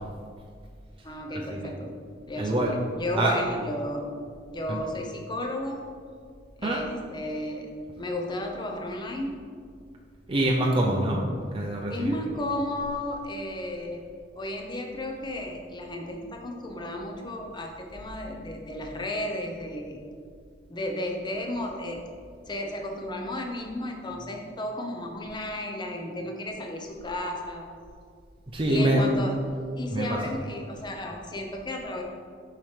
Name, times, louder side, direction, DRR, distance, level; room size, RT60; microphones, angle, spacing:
voice 1, 1.0-1.9 2.3-4.1 4.5-5.8 6.6-7.7 8.0-9.4 11.9-14.0 14.4-20.0 20.7-22.0 22.5-27.7 28.7-29.4 29.8-32.0, left 1 dB, 25° left, 2 dB, 0.7 m, -33 dB
voice 2, 2.4-2.7 3.1-3.3 4.7-4.8 6.6-6.8 10.3-11.2 11.5-12.1 28.5-29.1 29.9-30.1, right 1 dB, 30° right, -2 dB, 0.6 m, -24 dB
7.4 x 5.7 x 3.3 m, 2.1 s
head